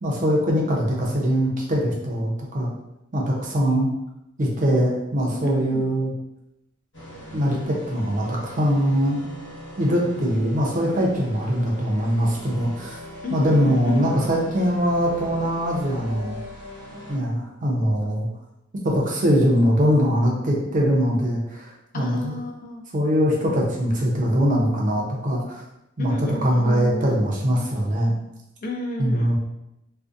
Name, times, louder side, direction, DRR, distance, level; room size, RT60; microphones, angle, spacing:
voice 1, 0.0-2.7 3.1-3.9 4.4-6.1 7.3-9.2 9.8-13.0 13.3-16.4 17.1-18.3 18.8-22.4 22.9-25.6 26.0-26.1 26.4-28.2 29.0-29.4, equal, 40° right, -2 dB, 0.5 m, -22 dB
voice 2, 5.4-5.9 13.2-14.4 21.9-22.8 26.0-27.2 28.6-29.3, left 2 dB, 45° left, 2 dB, 0.3 m, -32 dB
sound 1, 6.9-17.2, left 1 dB, 65° left, 1.0 m, -41 dB
2.6 x 2.1 x 2.3 m, 0.86 s
head